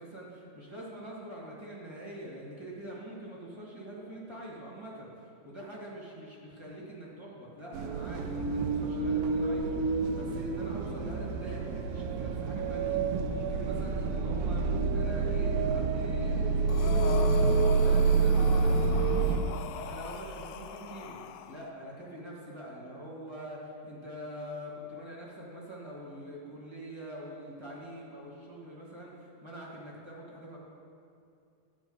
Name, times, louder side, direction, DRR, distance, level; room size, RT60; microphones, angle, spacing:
voice 1, 0.0-14.6 14.9-21.2 21.5-30.6, right 1 dB, 15° right, -6 dB, 1.0 m, -44 dB
sound 1, 7.7-19.4, right 4 dB, 80° right, 2.4 m, -28 dB
Breathing, 16.7-21.6, left 8 dB, 85° left, 2.4 m, -39 dB
13.5 x 8.0 x 5.5 m, 2.5 s
omnidirectional pair, 4.1 m